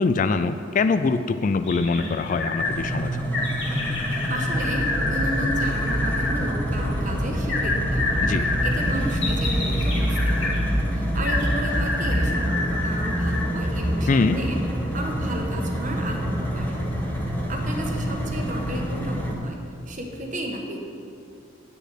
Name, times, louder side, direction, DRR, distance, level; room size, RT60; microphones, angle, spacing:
voice 1, 0.0-3.2 8.2-8.5 14.1-14.4, left 4 dB, 40° left, 11 dB, 0.3 m, -23 dB
sound 1, 1.6-2.7 3.3-6.3 7.5-10.6 11.2-13.5 14.0-14.1, left 3 dB, 60° left, 2.6 m, -28 dB
sound 2, 2.6-19.4, equal, 10° left, 1.3 m, -29 dB
voice 2, 4.1-10.7 10.9-14.6 14.9-16.8 17.5-19.6 19.9-20.8, right 1 dB, 40° right, 2 dB, 1.3 m, -33 dB
sound 3, 4.5-18.9, equal, 20° right, 1.5 m, -29 dB
9.5 x 6.9 x 8.3 m, 2.5 s
head